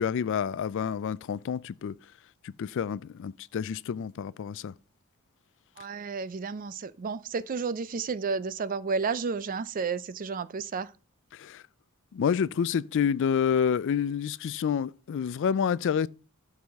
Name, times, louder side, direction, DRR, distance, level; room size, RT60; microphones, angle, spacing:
voice 1, 0.0-1.9 2.4-4.7 11.4-11.6 12.1-16.1, left 7 dB, 60° left, 0.3 m, -28 dB
voice 2, 5.8-10.9, right 5 dB, 40° right, 0.4 m, -32 dB
12.5 x 4.8 x 3.5 m
head